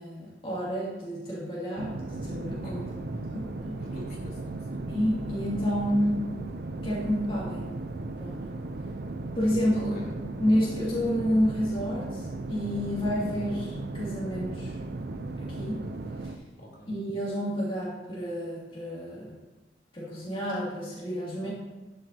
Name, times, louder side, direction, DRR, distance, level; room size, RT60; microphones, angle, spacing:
voice 1, 0.0-2.8 3.3-3.8 4.9-6.3 6.8-7.7 8.2-8.4 9.3-9.9 10.4-14.7 15.4-15.9 16.2-16.3 16.9-19.4 19.9-21.5, equal, 30° left, -8 dB, 2.7 m, -29 dB
sound 1, 1.8-16.4, right 2 dB, 65° right, 0.7 m, -36 dB
voice 2, 2.6-3.0 3.8-4.9 9.7-10.1 16.6-17.0, equal, 60° left, -4 dB, 3.5 m, -44 dB
11.5 x 9.3 x 2.9 m, 1.1 s
head